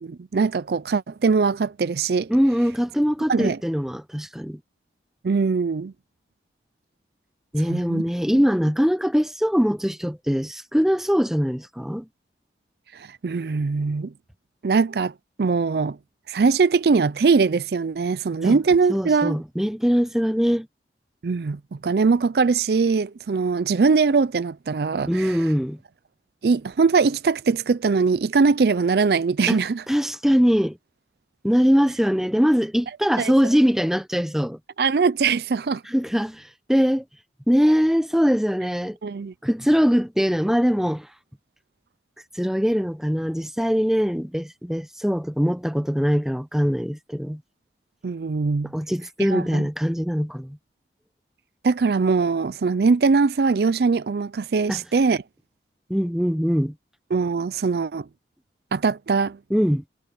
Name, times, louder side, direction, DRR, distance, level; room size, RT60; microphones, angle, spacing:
voice 1, 0.0-2.3 3.3-3.6 5.2-5.9 7.7-8.0 8.3-8.4 12.9-14.1 14.6-15.1 15.4-16.0 16.3-19.4 21.2-25.4 26.4-29.8 33.2-33.3 34.8-35.8 39.0-39.3 48.0-48.7 49.2-49.7 51.6-55.2 57.1-58.1 58.7-59.4, right 4 dB, 60° right, 0.4 m, -21 dB
voice 2, 2.3-4.6 7.5-12.1 18.4-18.6 18.9-20.7 25.1-25.8 29.5-30.8 31.4-34.6 35.9-37.0 37.5-39.0 39.4-41.1 42.3-47.4 48.7-50.6 54.7-54.8 55.9-56.7 59.5-59.8, equal, 5° right, 0.9 m, -22 dB
head